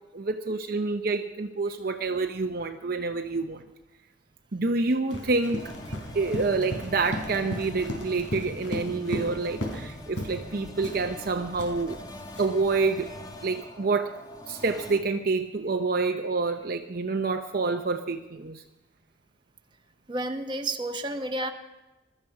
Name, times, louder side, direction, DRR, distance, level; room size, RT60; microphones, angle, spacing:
voice 1, 0.1-3.6 4.5-5.7 6.1-12.0 12.4-13.1 13.4-18.6, right 3 dB, 50° right, 6 dB, 0.7 m, -28 dB
Run, 5.1-9.9 10.2-10.4 10.8-12.7, equal, 85° left, 4.2 m, -35 dB
sound 1, 5.6-15.0, left 1 dB, 20° left, 1.6 m, -43 dB
voice 2, 20.1-21.5, right 2 dB, 25° right, 5 dB, 1.1 m, -31 dB
21.5 x 13.0 x 4.8 m, 1.1 s
head